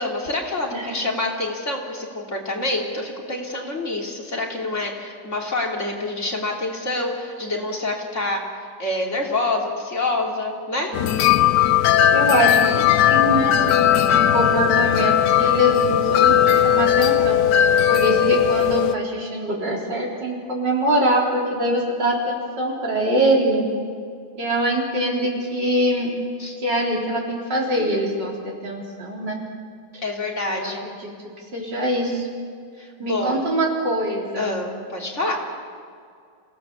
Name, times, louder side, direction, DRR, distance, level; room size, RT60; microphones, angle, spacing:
voice 1, 0.0-8.4 8.8-11.0 26.4-26.5 30.0-30.8 32.8-33.4 34.4-35.4, left 2 dB, 40° left, -1 dB, 3.4 m, -27 dB
sound 1, 10.9-18.9, left 10 dB, 80° left, 1.4 m, -18 dB
voice 2, 12.1-13.6 14.1-17.4 17.9-23.6 24.3-26.1 26.6-29.4 30.5-30.7 31.0-31.1 31.5-32.3 33.0-34.5, right 1 dB, 85° right, -2 dB, 4.6 m, -23 dB
27.0 x 17.0 x 7.1 m, 2.2 s
omnidirectional pair, 1.8 m